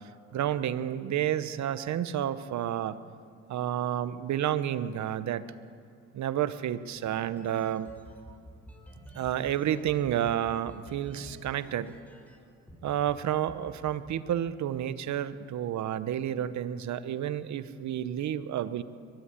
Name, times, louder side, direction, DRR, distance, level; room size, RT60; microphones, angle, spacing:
voice 1, 0.3-3.0 3.5-5.4 6.1-7.9 9.1-11.9 12.8-18.8, right 10 dB, 70° right, 13 dB, 1.0 m, -30 dB
sound 1, 7.0-12.4 12.7-13.1 13.5-14.9, right 1 dB, 5° left, 4.3 m, -50 dB
23.5 x 11.5 x 9.8 m, 2.3 s
cardioid pair, 90°, 30 cm